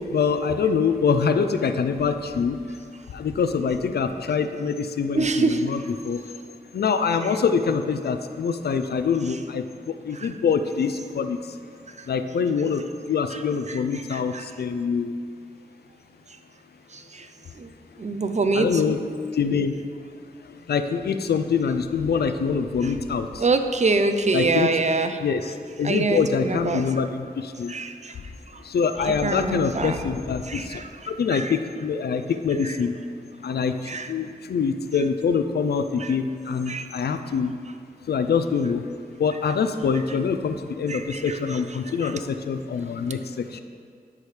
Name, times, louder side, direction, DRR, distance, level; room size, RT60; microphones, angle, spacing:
voice 1, 0.0-2.6 3.1-6.2 6.7-11.6 12.1-15.2 18.5-19.0 19.3-19.7 20.4-23.4 24.3-24.7 25.2-27.7 28.6-30.8 31.1-33.0 33.4-37.5 38.1-38.9 39.2-43.6, left 6 dB, 80° left, 9 dB, 0.4 m, -25 dB
voice 2, 5.1-5.7 10.2-10.3 12.0-12.1 13.7-13.8 14.1-14.4 16.9-17.3 17.6-17.7 18.0-18.9 22.8-22.9 23.4-25.2 25.8-26.9 27.7-28.1 29.2-30.0 30.5-30.9 31.3-31.5 32.6-32.8 33.9-34.1 36.0-36.1 36.7-36.9 40.9-41.6 42.0-42.1, right 3 dB, 45° right, 8 dB, 0.6 m, -25 dB
12.5 x 4.8 x 3.3 m, 2.2 s
cardioid pair, 55°, 16 cm